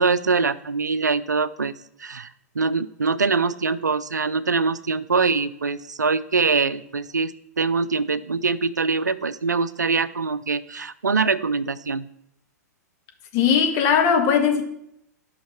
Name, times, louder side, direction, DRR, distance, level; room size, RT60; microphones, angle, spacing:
voice 1, 0.0-1.7 2.0-12.1, right 4 dB, 80° right, 0.5 m, -23 dB
voice 2, 13.3-14.6, left 7 dB, 35° left, 1.9 m, -19 dB
11.0 x 5.8 x 5.9 m
figure-of-eight pair, 110°, 9 cm